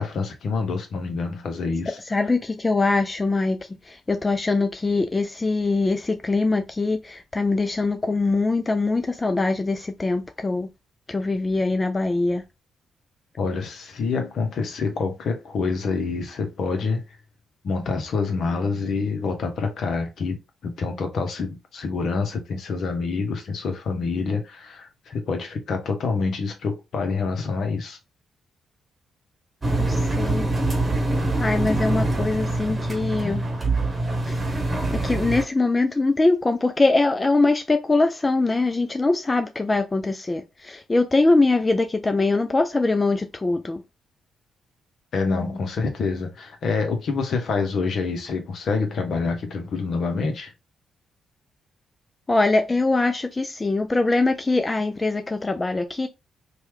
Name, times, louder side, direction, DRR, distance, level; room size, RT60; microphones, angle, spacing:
voice 1, 0.0-2.0 13.4-17.0 17.6-20.4 20.6-28.0 45.1-50.5, left 4 dB, 60° left, 0.8 m, -27 dB
voice 2, 2.1-3.6 3.8-10.7 11.1-12.4 29.7-30.5 31.4-33.4 34.2-34.6 34.9-43.8 52.3-56.1, left 3 dB, 25° left, 0.4 m, -22 dB
Engine, 29.6-35.4, right 2 dB, 30° right, 1.0 m, -24 dB
2.9 x 2.3 x 3.1 m
hypercardioid pair, 40°, 0 cm